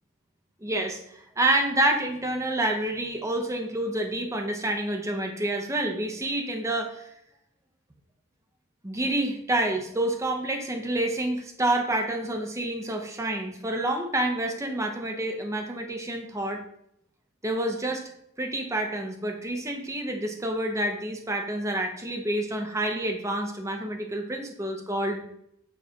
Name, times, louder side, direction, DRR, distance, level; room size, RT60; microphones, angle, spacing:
voice 1, 0.6-7.0 8.8-16.6 17.4-18.0 18.4-25.2, right 1 dB, 15° right, 3 dB, 0.8 m, -28 dB
8.5 x 3.2 x 4.0 m, 0.73 s
head